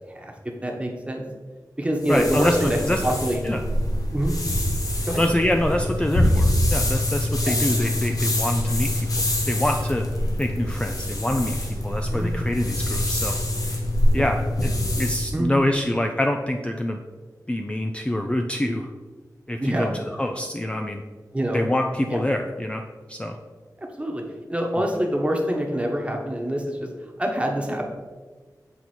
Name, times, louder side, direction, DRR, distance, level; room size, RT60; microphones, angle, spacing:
voice 1, 0.1-1.2 1.8-3.4 4.1-4.3 5.1-5.2 7.4-7.5 12.1-12.3 14.1-14.3 15.3-15.5 19.6-19.9 21.3-21.6 22.1-22.2 23.8-24.2 24.5-27.9, equal, 15° right, 1 dB, 1.1 m, -26 dB
sound 1, 2.0-15.3, left 1 dB, 60° left, 1.2 m, -24 dB
voice 2, 2.1-2.6 2.9-3.0 3.4-3.6 5.2-8.9 9.5-10.0 10.4-11.6 11.8-13.4 14.1-14.7 15.0-17.0 17.5-18.9 19.5-19.9 20.2-21.0 21.5-22.8 23.1-23.4, left 1 dB, 15° left, 3 dB, 0.4 m, -25 dB
8.0 x 4.0 x 4.4 m, 1.4 s
wide cardioid pair, 95°, 7 cm